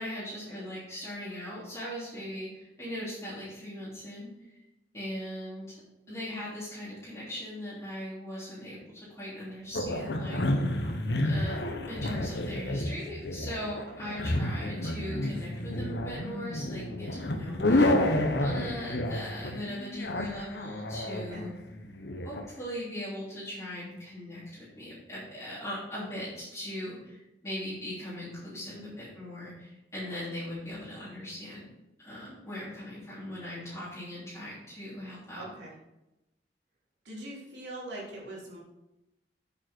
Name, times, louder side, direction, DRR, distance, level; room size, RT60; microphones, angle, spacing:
voice 1, 0.0-4.6 4.9-5.8 6.1-10.4 11.2-18.1 18.4-21.5 22.2-31.7 32.0-35.5, left 1 dB, 15° left, -11 dB, 3.4 m, -39 dB
sound 1, 9.7-22.4, left 1 dB, 75° left, 1.2 m, -30 dB
voice 2, 10.7-11.0 14.0-14.2 21.3-21.5 28.7-29.0 35.4-35.7 37.0-38.6, right 1 dB, 85° right, -5 dB, 3.7 m, -43 dB
8.8 x 7.6 x 4.6 m, 0.95 s
head